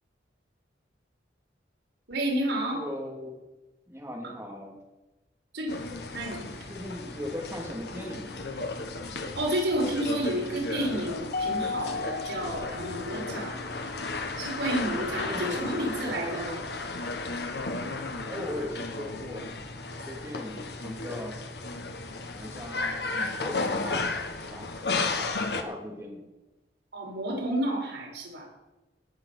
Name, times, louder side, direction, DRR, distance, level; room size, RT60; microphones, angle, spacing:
voice 1, 2.1-2.8 5.5-5.7 6.1-6.4 9.3-13.6 14.4-16.6 26.9-28.5, right 1 dB, 75° right, -2 dB, 5.1 m, -30 dB
voice 2, 2.7-3.4 3.9-4.8 5.8-6.0 6.6-8.5 15.2-15.8 18.2-21.3 22.3-26.3, left 1 dB, 10° right, -2 dB, 3.2 m, -39 dB
sound 1, 5.7-25.6, left 3 dB, 65° left, 1.3 m, -34 dB
Mallet percussion, 11.3-13.8, left 4 dB, 45° left, 0.4 m, -34 dB
18.5 x 7.6 x 6.1 m, 1.1 s
head